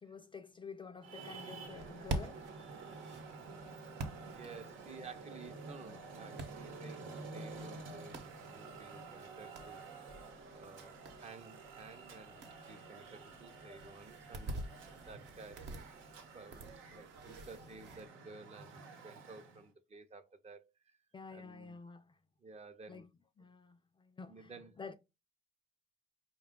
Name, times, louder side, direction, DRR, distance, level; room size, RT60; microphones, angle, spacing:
voice 1, 0.0-2.5 21.1-22.2 22.9-23.1 23.4-24.9, left 5 dB, 25° left, 0.4 m, -50 dB
Traffic noise roadway noise, 1.0-19.7, right 3 dB, 85° right, 1.0 m, -50 dB
sound 1, 1.6-18.1, right 2 dB, 65° right, 1.0 m, -48 dB
voice 2, 4.3-8.2 8.5-9.8 10.5-14.7 15.1-15.8 16.3-21.0 21.3-21.8 22.4-23.1 24.3-24.7, right 4 dB, 35° right, 0.6 m, -54 dB
5.0 x 2.3 x 3.6 m
cardioid pair, 90°, 20 cm